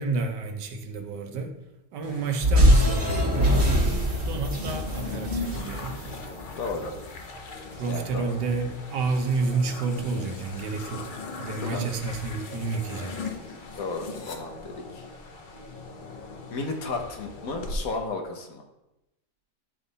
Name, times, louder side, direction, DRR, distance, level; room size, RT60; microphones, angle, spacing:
voice 1, 0.0-1.5 1.9-3.6 4.3-6.0 7.8-13.1, right 4 dB, 85° right, 5 dB, 1.5 m, -30 dB
sound 1, 2.0-17.8, left 3 dB, 45° left, 0.6 m, -39 dB
sound 2, 2.4-6.8, equal, 45° right, 2.1 m, -22 dB
voice 2, 6.6-6.9 7.9-8.3 11.6-11.9 13.8-15.1 16.5-18.6, left 3 dB, 60° left, 3 dB, 1.3 m, -33 dB
11.0 x 3.8 x 4.0 m, 0.93 s
omnidirectional pair, 1.8 m